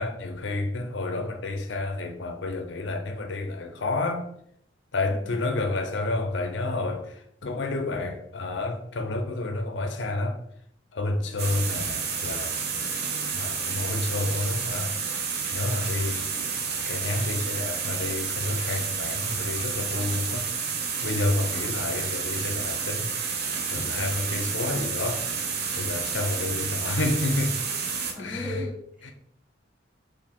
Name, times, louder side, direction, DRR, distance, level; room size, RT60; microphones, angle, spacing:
voice 1, 0.0-4.3 4.9-10.4 10.9-12.5 13.3-15.0 15.5-16.3 16.9-20.5 21.0-23.1 23.7-25.4 25.8-27.6 28.2-28.6, left 2 dB, 70° left, 0.7 m, -29 dB
voice 2, 5.1-5.4 16.1-16.3 21.5-21.9 28.1-29.1, left 1 dB, 5° right, 1.5 m, -39 dB
sound 1, 11.4-28.1, right 5 dB, 60° right, 0.7 m, -30 dB
4.6 x 2.7 x 3.6 m
head